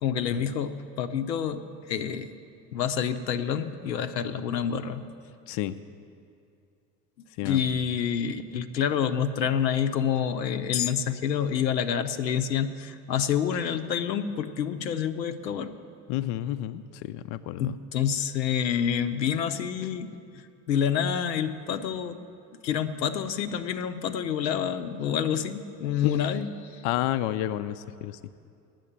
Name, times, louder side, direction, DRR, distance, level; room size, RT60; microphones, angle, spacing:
voice 1, 0.0-1.6 1.9-2.3 2.7-5.0 7.4-15.7 17.6-20.1 20.7-22.2 22.6-26.8, left 8 dB, 80° left, 9 dB, 0.6 m, -28 dB
voice 2, 7.4-7.8 16.1-17.8 26.0-26.1 26.8-28.2, left 13 dB, 40° left, 11 dB, 0.4 m, -30 dB
8.9 x 7.6 x 9.1 m, 2.4 s
figure-of-eight pair, 65°, 50 cm